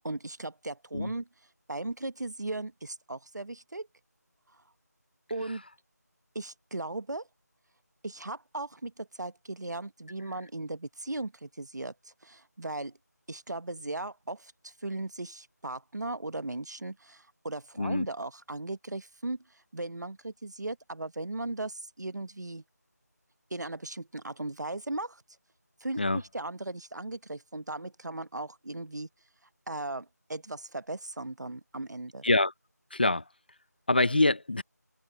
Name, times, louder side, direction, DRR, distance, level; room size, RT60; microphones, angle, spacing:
voice 1, 0.0-1.3 1.7-3.9 5.3-5.6 6.3-7.3 8.0-12.9 13.3-19.4 19.7-22.6 23.5-25.2 25.8-29.1 29.7-32.3, right 2 dB, 75° right, 1.3 m, -37 dB
voice 2, 32.9-33.2 33.9-34.6, left 2 dB, 35° left, 0.7 m, -25 dB
figure-of-eight pair, 175°, 9 cm